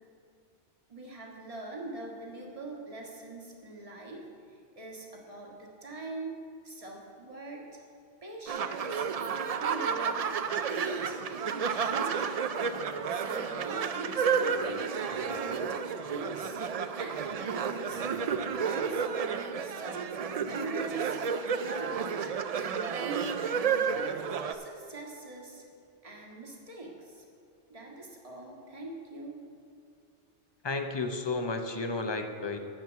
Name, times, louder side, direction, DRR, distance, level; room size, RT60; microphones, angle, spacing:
voice 1, 0.9-6.3 6.6-7.6 8.2-9.1 9.4-10.3 10.6-12.4 12.8-15.8 16.1-16.6 17.0-18.1 18.4-22.3 22.6-24.1 24.5-25.6 26.0-27.3 27.7-29.4, right 2 dB, 30° right, -1 dB, 1.5 m, -43 dB
sound 1, 8.5-24.5, right 6 dB, 70° right, 0.3 m, -31 dB
voice 2, 30.6-32.6, left 3 dB, 30° left, 6 dB, 0.6 m, -32 dB
12.0 x 4.7 x 8.0 m, 2.4 s
omnidirectional pair, 1.2 m